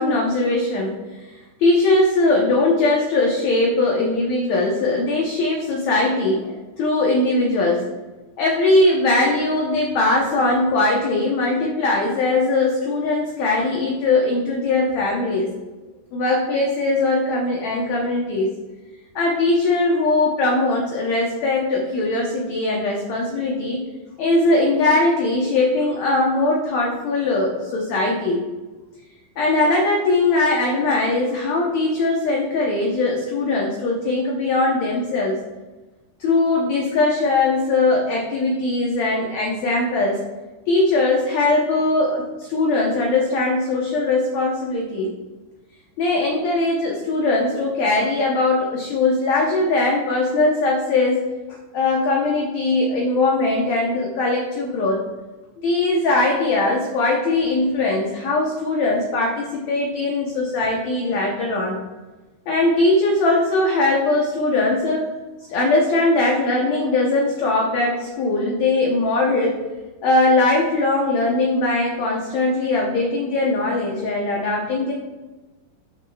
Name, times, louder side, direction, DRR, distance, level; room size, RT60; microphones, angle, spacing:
voice 1, 0.0-7.8 8.4-15.5 16.1-18.5 19.2-23.8 24.2-28.4 29.4-35.4 36.2-40.2 40.7-45.1 46.0-51.2 51.5-55.0 55.6-61.8 62.5-65.0 65.5-69.6 70.0-74.9, left 2 dB, 65° left, -2 dB, 2.0 m, -20 dB
14.0 x 6.7 x 2.3 m, 1.2 s
omnidirectional pair, 3.9 m